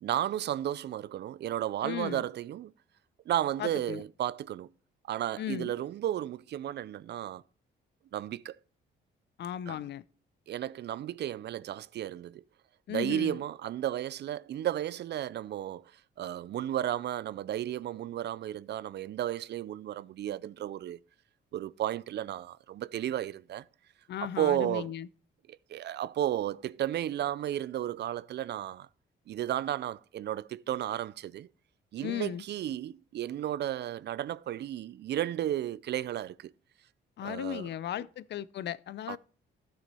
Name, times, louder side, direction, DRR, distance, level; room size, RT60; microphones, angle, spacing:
voice 1, 0.0-2.7 3.3-4.7 5.1-7.4 8.1-8.6 9.7-9.8 10.5-12.4 12.9-21.0 21.5-23.6 24.2-24.9 25.5-28.9 29.3-31.5 31.9-36.5 37.2-37.7 39.1-39.2, right 12 dB, 60° right, 0.5 m, -33 dB
voice 2, 1.8-2.3 3.6-4.0 5.4-5.7 9.4-10.0 12.9-13.4 24.1-25.1 32.0-32.4 37.2-39.2, left 11 dB, 60° left, 0.5 m, -36 dB
12.5 x 6.3 x 4.2 m
cardioid pair, 90°, 20 cm